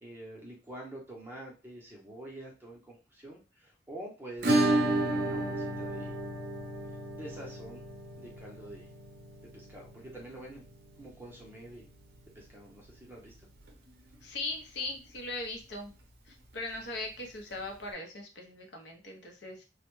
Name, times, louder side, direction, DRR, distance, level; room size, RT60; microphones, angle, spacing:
voice 1, 0.0-6.1 7.1-7.8 8.2-8.9 9.5-10.6 11.0-11.9 12.3-13.3, right 1 dB, 10° right, -2 dB, 0.6 m, -47 dB
Acoustic guitar / Strum, 4.4-13.0 13.3-13.4 13.7-13.8 14.1-14.2 16.3-16.4 17.5-17.6, right 1 dB, 55° right, 0.5 m, -33 dB
voice 2, 14.2-15.9 16.3-19.6, left 2 dB, 70° left, 2 dB, 0.6 m, -39 dB
2.1 x 2.1 x 3.0 m, 0.31 s
head